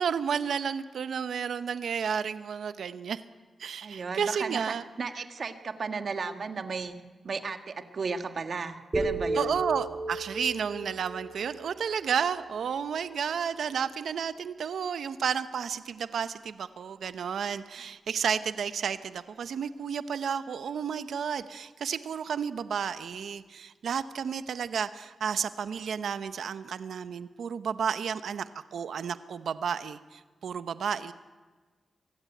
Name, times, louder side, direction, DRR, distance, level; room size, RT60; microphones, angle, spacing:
voice 1, 0.0-3.2 3.6-4.8 9.3-31.1, right 7 dB, 80° right, 12 dB, 0.8 m, -32 dB
voice 2, 3.8-6.9 7.2-9.6, right 4 dB, 60° right, 7 dB, 1.6 m, -34 dB
sound 1, 8.9-13.0, right 2 dB, 25° right, 7.1 m, -35 dB
24.0 x 16.0 x 9.2 m, 1.4 s
cardioid pair, 65°, 0 cm